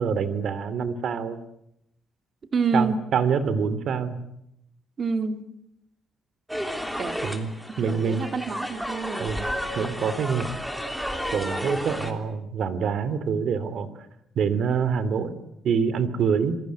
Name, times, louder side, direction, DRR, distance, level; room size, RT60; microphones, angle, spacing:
voice 1, 0.0-1.4 2.7-4.2 7.2-8.2 9.2-9.5 9.7-10.5 11.3-14.1 14.3-15.3 15.6-16.6, right 6 dB, 55° right, 15 dB, 2.7 m, -26 dB
voice 2, 2.5-3.1 5.0-5.4 7.0-7.2 7.8-9.4, right 4 dB, 35° right, 9 dB, 2.3 m, -27 dB
sound 1, 6.5-12.1, equal, ahead, 3.2 m, -32 dB
27.5 x 22.0 x 9.4 m, 0.79 s
cardioid pair, 160°, 0 cm